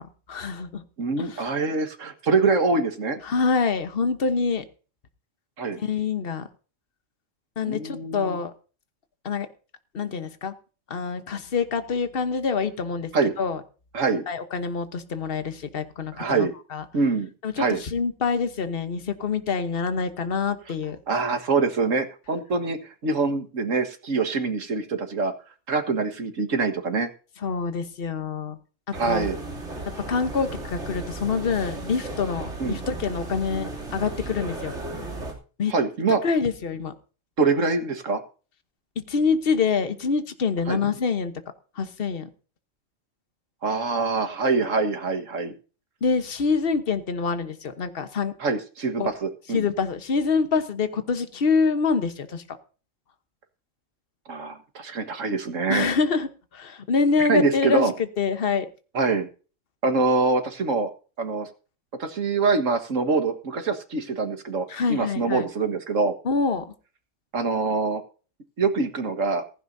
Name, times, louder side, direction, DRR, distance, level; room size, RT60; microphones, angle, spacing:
voice 1, 0.0-0.8 1.2-1.4 3.2-4.6 5.8-6.5 7.6-8.5 9.2-9.5 9.9-10.5 10.9-13.1 13.4-13.6 14.3-16.8 17.4-21.0 27.4-28.6 28.9-29.3 30.1-34.7 35.6-35.7 36.2-36.9 39.0-41.3 41.8-42.3 46.0-48.3 49.0-49.1 49.5-52.4 55.7-56.3 56.5-58.7 64.7-65.5 66.2-66.6, left 5 dB, 50° left, 9 dB, 1.3 m, -26 dB
voice 2, 1.0-3.2 5.6-5.8 7.6-8.4 13.1-13.3 13.9-14.3 16.1-16.5 16.9-17.3 17.6-17.8 21.1-25.3 25.7-27.1 28.9-29.4 32.6-32.8 35.7-36.2 37.4-38.2 40.7-40.8 43.6-45.5 48.4-49.7 54.3-55.9 57.2-57.9 58.9-59.3 59.8-60.9 61.2-61.5 62.0-66.1 67.3-68.0 68.6-69.4, right 4 dB, 90° right, 8 dB, 2.0 m, -24 dB
sound 1, 28.9-35.3, right 2 dB, 65° right, 3.3 m, -35 dB
15.5 x 15.5 x 2.7 m, 0.36 s
omnidirectional pair, 1.3 m